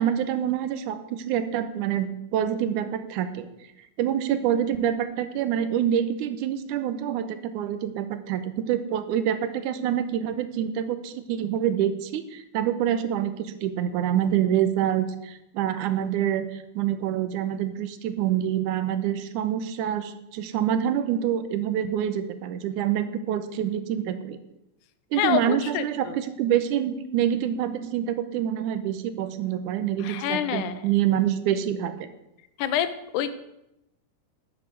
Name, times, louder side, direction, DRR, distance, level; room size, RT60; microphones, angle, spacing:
voice 1, 0.0-3.5 4.0-24.4 25.1-32.1, right 10 dB, 90° right, 11 dB, 2.3 m, -26 dB
voice 2, 25.1-26.2 30.0-30.9 32.6-33.3, left 10 dB, 85° left, 12 dB, 2.2 m, -27 dB
11.5 x 7.2 x 6.4 m, 0.87 s
omnidirectional pair, 3.5 m